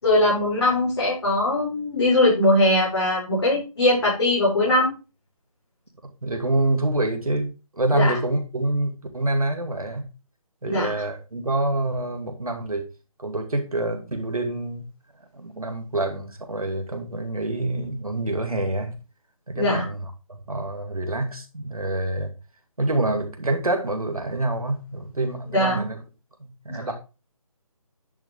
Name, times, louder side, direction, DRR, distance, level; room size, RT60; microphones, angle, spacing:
voice 1, 0.0-4.9 7.9-8.1 10.6-10.9 19.6-19.8 25.5-25.8 26.7-26.9, left 1 dB, 45° left, -7 dB, 4.7 m, -21 dB
voice 2, 6.2-10.0 10.6-12.9 13.2-14.9 15.3-18.9 19.5-22.3 22.8-26.0 26.4-26.9, right 2 dB, 75° right, 5 dB, 2.6 m, -26 dB
10.5 x 6.0 x 3.8 m, 0.30 s
figure-of-eight pair, 155°, 19 cm